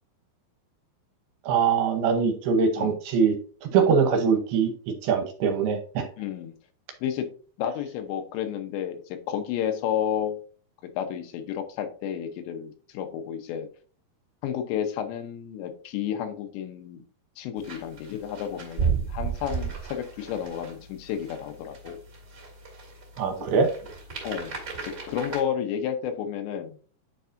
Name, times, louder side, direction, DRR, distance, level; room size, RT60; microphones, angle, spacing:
voice 1, 1.5-3.4 3.7-4.7 5.0-6.1 23.2-23.7, right 6 dB, 75° right, 6 dB, 2.6 m, -22 dB
voice 2, 6.2-6.5 7.0-7.3 7.6-10.4 10.8-13.7 14.4-17.0 17.4-22.0 24.2-24.5 24.8-26.8, left 9 dB, 85° left, 6 dB, 3.2 m, -31 dB
sound 1, 17.6-25.4, right 6 dB, 35° right, 1.9 m, -34 dB
10.0 x 4.7 x 2.6 m, 0.40 s
omnidirectional pair, 5.0 m